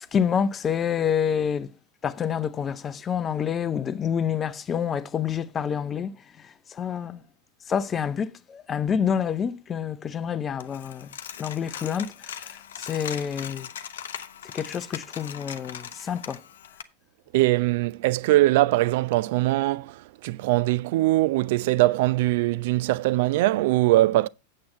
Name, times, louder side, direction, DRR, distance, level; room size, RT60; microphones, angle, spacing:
voice 1, 0.1-1.7 2.0-6.2 6.4-7.2 7.7-11.1 11.4-13.7 14.5-16.4, left 7 dB, 25° left, 0.6 m, -28 dB
Coin (dropping), 10.6-16.8, left 9 dB, 60° left, 0.7 m, -40 dB
voice 2, 17.3-24.3, right 17 dB, 50° right, 0.4 m, -22 dB
8.7 x 7.5 x 4.3 m
figure-of-eight pair, 90°, 0 cm